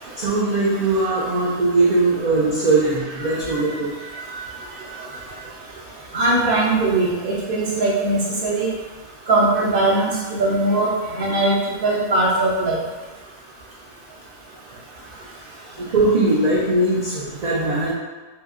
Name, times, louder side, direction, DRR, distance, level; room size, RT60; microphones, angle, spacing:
voice 1, 0.2-3.9 15.8-17.9, right 2 dB, 85° right, -7 dB, 0.3 m, -20 dB
voice 2, 4.1-4.5 6.1-8.7 9.3-11.6 11.8-12.8, right 2 dB, 60° right, -4 dB, 0.7 m, -20 dB
2.7 x 2.7 x 2.4 m, 1.3 s
omnidirectional pair, 1.3 m